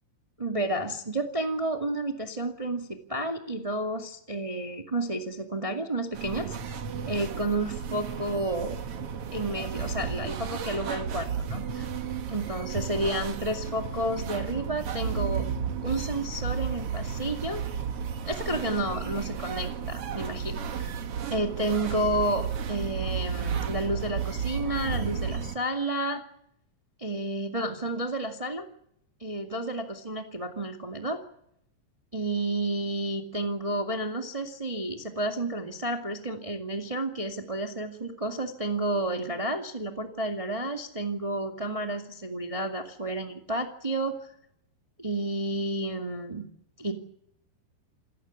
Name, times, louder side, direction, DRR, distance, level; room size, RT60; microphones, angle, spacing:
voice 1, 0.4-6.5 7.1-8.8 9.3-11.9 12.3-15.5 15.8-17.6 18.3-20.9 21.3-26.2 27.0-28.7 29.2-31.2 32.1-44.3 45.0-46.5 46.8-46.9, right 1 dB, 20° right, 3 dB, 0.8 m, -31 dB
sound 1, 6.1-25.6, right 7 dB, 60° right, 1.5 m, -33 dB
28.0 x 15.0 x 9.6 m, 0.74 s
omnidirectional pair, 4.8 m